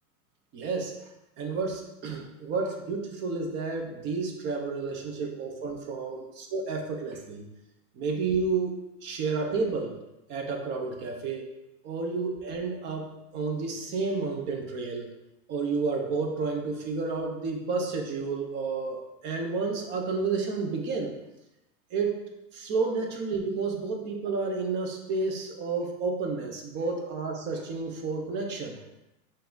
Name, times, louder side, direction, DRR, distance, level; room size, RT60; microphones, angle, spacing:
voice 1, 0.5-0.9 1.4-7.4 7.9-10.0 10.3-11.5 11.8-15.1 15.5-21.1 21.9-22.2 22.5-28.8, right 4 dB, 25° right, 2 dB, 0.6 m, -31 dB
5.6 x 2.6 x 3.7 m, 0.92 s
hypercardioid pair, 135°, 46 cm